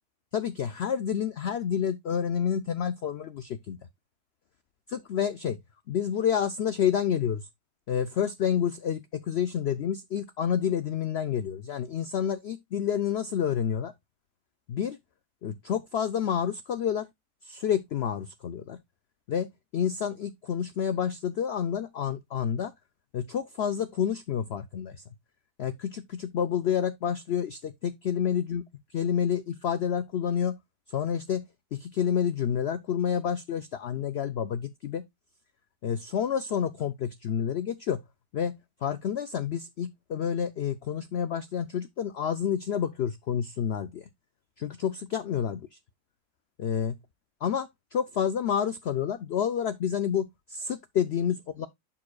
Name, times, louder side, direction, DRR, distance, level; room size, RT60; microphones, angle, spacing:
voice 1, 0.3-3.8 4.9-5.6 5.9-7.5 7.9-13.9 14.7-15.0 15.4-17.1 17.4-18.8 19.3-19.5 19.7-22.7 23.1-25.0 25.6-28.6 28.9-30.6 30.9-31.4 31.7-35.0 35.8-38.0 38.3-38.5 38.8-44.0 44.6-45.6 46.6-47.0 47.4-51.7, left 8 dB, 90° left, 0.5 m, -29 dB
11.0 x 4.8 x 2.3 m
omnidirectional pair, 1.7 m